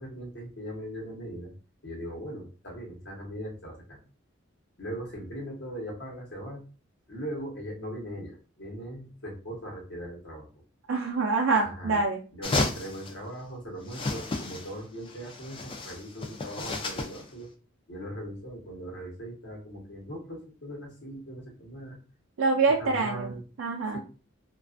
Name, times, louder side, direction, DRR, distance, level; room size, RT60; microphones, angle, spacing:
voice 1, 0.0-1.5 1.8-4.0 4.8-6.6 7.1-10.5 11.6-12.0 12.3-17.5 17.9-22.0 22.8-23.4 23.9-24.0, equal, 60° left, -1 dB, 0.9 m, -39 dB
voice 2, 10.9-12.2 22.4-23.3 23.6-24.0, right 4 dB, 75° right, -1 dB, 0.4 m, -25 dB
sound 1, 12.4-13.1 13.9-14.8 15.1-17.3, left 3 dB, 25° left, 0.3 m, -32 dB
2.4 x 2.3 x 2.4 m, 0.35 s
head